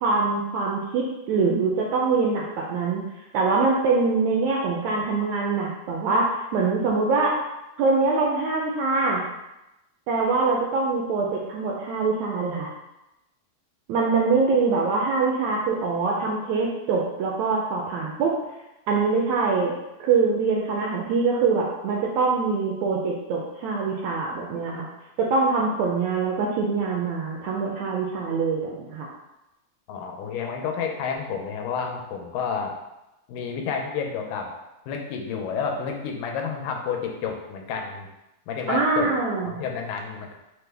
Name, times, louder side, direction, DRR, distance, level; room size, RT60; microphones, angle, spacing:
voice 1, 0.0-3.0 3.3-7.3 7.8-9.2 10.1-12.7 13.9-18.3 18.9-19.7 20.0-24.9 25.2-29.1 38.7-39.5, right 4 dB, 80° right, -2 dB, 1.6 m, -24 dB
voice 2, 29.9-32.8 33.3-34.5 34.9-38.1 38.5-39.1 39.5-40.4, left 6 dB, 85° left, 2 dB, 2.1 m, -30 dB
5.7 x 2.1 x 3.3 m, 0.93 s
omnidirectional pair, 3.7 m